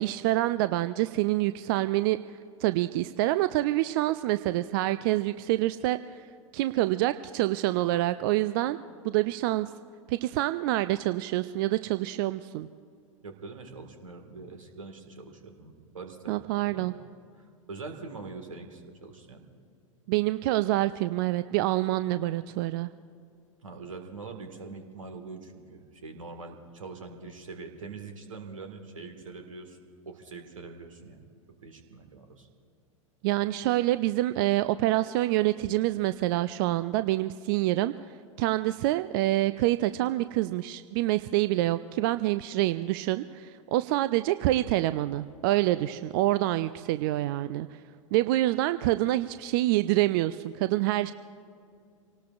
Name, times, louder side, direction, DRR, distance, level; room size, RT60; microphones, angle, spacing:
voice 1, 0.0-2.2 2.6-6.2 6.5-8.8 9.0-9.7 10.1-12.7 16.3-16.9 20.1-22.9 33.2-37.9 38.4-47.7 48.1-51.1, right 16 dB, 40° right, 13 dB, 0.4 m, -26 dB
voice 2, 13.2-17.0 17.4-19.4 23.6-29.8 30.1-31.2 31.6-32.5, right 4 dB, 70° right, 5 dB, 1.9 m, -43 dB
26.5 x 18.5 x 2.5 m, 2.3 s
figure-of-eight pair, 95°, 17 cm